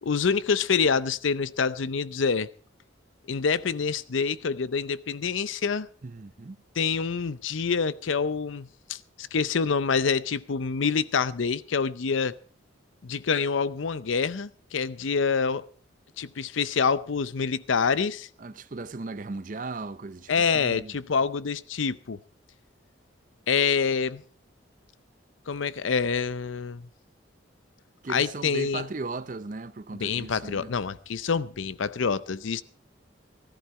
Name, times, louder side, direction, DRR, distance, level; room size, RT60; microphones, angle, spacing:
voice 1, 0.0-2.5 3.3-5.9 6.8-12.4 13.0-15.7 16.2-18.3 20.3-22.2 23.5-24.2 25.5-26.9 28.1-28.9 30.0-32.6, left 5 dB, 75° left, 0.6 m, -26 dB
voice 2, 6.0-6.6 18.4-21.0 28.0-30.7, right 3 dB, 40° right, 0.6 m, -37 dB
15.0 x 14.0 x 4.3 m
head